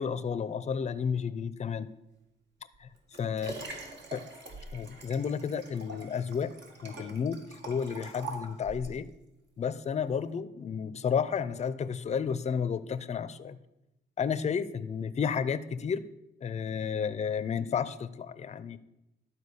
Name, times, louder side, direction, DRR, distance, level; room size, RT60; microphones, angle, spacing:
voice 1, 0.0-1.9 2.8-2.9 3.2-3.5 4.1-4.3 4.7-6.5 6.8-7.4 7.7-9.1 9.6-13.6 14.2-16.0 16.4-18.8, left 6 dB, 35° left, 14 dB, 0.6 m, -32 dB
Liquid, 2.7-9.0 9.6-9.7, right 3 dB, 60° right, 1.9 m, -44 dB
11.5 x 4.5 x 6.8 m, 0.89 s
cardioid pair, 90°, 20 cm